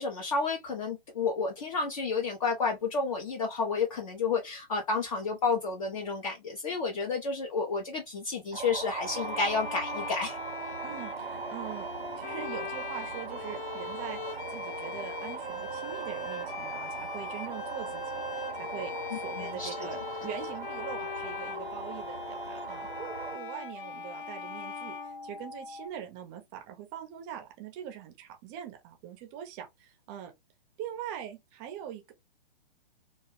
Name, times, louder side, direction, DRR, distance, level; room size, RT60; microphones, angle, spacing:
voice 1, 0.0-10.4 19.4-19.9, left 4 dB, 35° left, 0.5 m, -31 dB
sound 1, 8.5-23.4, right 5 dB, 80° right, 0.6 m, -40 dB
sound 2, 9.0-25.9, left 5 dB, 55° left, 0.8 m, -41 dB
voice 2, 10.8-11.9 12.2-22.9 23.3-30.3 30.8-32.1, right 10 dB, 15° right, 0.5 m, -42 dB
sound 3, 16.5-25.9, left 2 dB, 85° left, 1.1 m, -44 dB
2.2 x 2.2 x 3.1 m
figure-of-eight pair, 120°, 31 cm